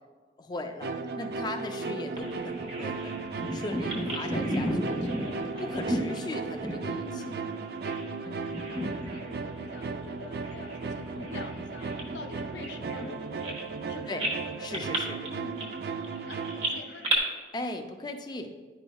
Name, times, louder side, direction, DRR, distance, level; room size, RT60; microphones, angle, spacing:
voice 1, 0.4-4.7 5.6-7.4 8.2-8.5 14.1-14.2 14.6-15.2 17.5-18.5, left 2 dB, 25° left, 5 dB, 0.4 m, -38 dB
sound 1, 0.8-16.8, right 4 dB, 60° right, 0.4 m, -36 dB
Bird vocalization bird call bird song, 2.2-8.1 8.4-9.3 9.6-9.8 10.4-13.9 14.2-17.2, right 1 dB, 35° right, 1.2 m, -34 dB
voice 2, 4.1-6.3 6.7-13.6 13.9-14.3 15.2-17.1, left 3 dB, 85° left, 6 dB, 0.6 m, -46 dB
10.0 x 5.2 x 2.3 m, 1.5 s
head